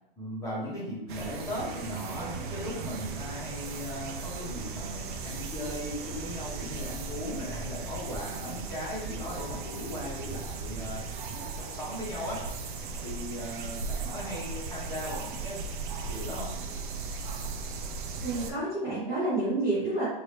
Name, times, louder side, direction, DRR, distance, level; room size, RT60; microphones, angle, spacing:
voice 1, 0.2-16.5, left 1 dB, 10° left, -6 dB, 1.0 m, -38 dB
sound 1, 1.1-18.5, right 5 dB, 60° right, 0.5 m, -37 dB
sound 2, 4.3-12.3, right 1 dB, 30° left, 0.6 m, -44 dB
voice 2, 18.2-20.1, right 2 dB, 10° right, -10 dB, 0.6 m, -29 dB
2.8 x 2.7 x 3.3 m, 0.93 s
hypercardioid pair, 150°, 29 cm